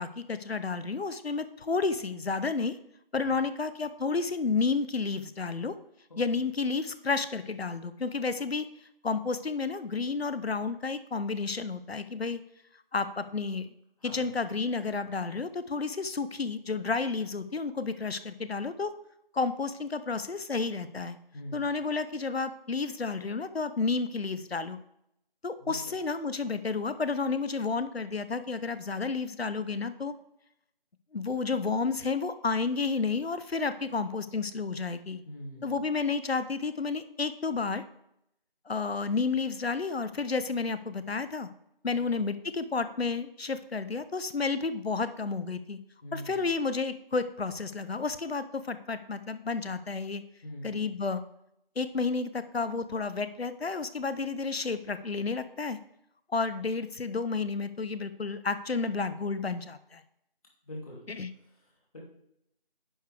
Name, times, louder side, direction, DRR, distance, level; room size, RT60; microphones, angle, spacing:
voice 1, 0.0-2.8 3.1-5.7 6.2-8.7 9.0-12.4 12.9-13.7 14.0-18.9 19.3-21.2 21.5-24.8 25.4-30.1 31.1-35.2 35.6-37.8 38.7-41.5 41.8-45.8 46.1-50.2 50.6-51.2 51.8-55.8 56.3-60.0 61.1-61.3, left 4 dB, 85° left, 13 dB, 0.8 m, -31 dB
voice 2, 14.0-14.3 21.3-21.7 25.6-26.0 35.2-35.8 41.9-42.1 46.0-46.5 50.4-50.9 60.6-61.1 61.4-62.0, equal, 35° left, -3 dB, 2.7 m, -44 dB
10.0 x 6.7 x 3.4 m, 0.78 s
figure-of-eight pair, 170°, 30 cm